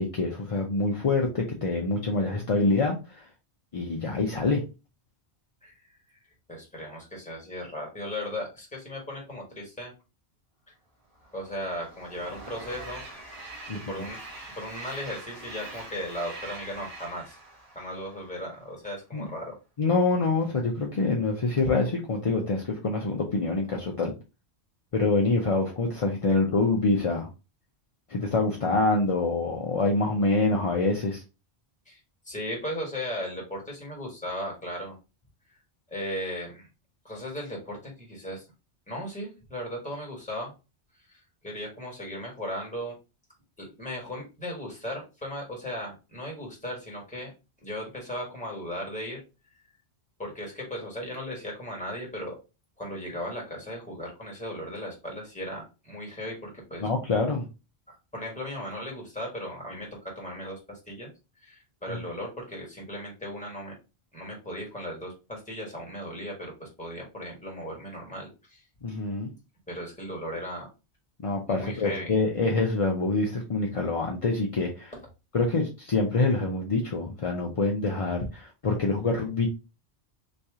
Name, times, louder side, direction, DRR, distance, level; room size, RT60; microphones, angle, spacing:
voice 1, 0.0-3.0 3.7-4.6 13.7-13.8 19.1-19.2 19.8-24.1 24.9-27.3 28.1-31.2 56.8-57.5 61.9-62.0 68.8-69.3 71.2-74.9 75.3-79.5, left 3 dB, 40° left, 0 dB, 0.5 m, -26 dB
voice 2, 6.5-9.9 11.3-13.0 13.9-14.2 14.6-17.4 17.7-19.6 31.9-32.0 32.2-35.0 35.9-36.7 37.0-38.4 38.9-40.5 41.1-42.9 43.6-47.3 47.6-49.2 50.2-52.4 52.8-56.9 57.9-61.1 61.4-63.7 64.1-68.6 69.7-70.7 71.5-72.2, equal, 5° left, -1 dB, 1.4 m, -37 dB
Train, 11.1-18.6, right 2 dB, 35° right, 1.3 m, -44 dB
3.1 x 2.8 x 3.5 m, 0.29 s
omnidirectional pair, 1.1 m